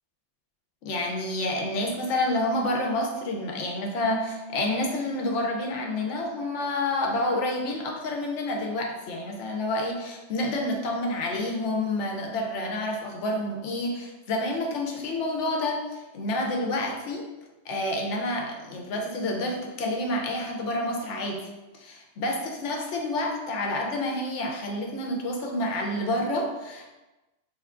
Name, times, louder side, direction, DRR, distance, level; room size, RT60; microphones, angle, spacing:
voice 1, 0.8-17.2 17.7-26.9, left 1 dB, 70° left, 1 dB, 1.0 m, -29 dB
3.4 x 2.3 x 3.7 m, 1.1 s
omnidirectional pair, 1.3 m